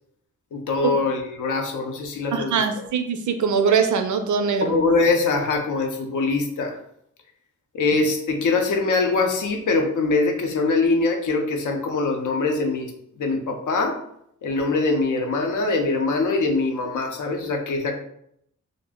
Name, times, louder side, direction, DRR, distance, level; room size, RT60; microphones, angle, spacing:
voice 1, 0.5-2.6 4.6-6.8 7.7-12.9 13.2-14.0 14.4-18.0, left 3 dB, 85° left, 3 dB, 0.6 m, -23 dB
voice 2, 2.3-4.8, right 6 dB, 75° right, 7 dB, 0.4 m, -22 dB
2.6 x 2.0 x 3.5 m, 0.71 s
wide cardioid pair, 125°, 30 cm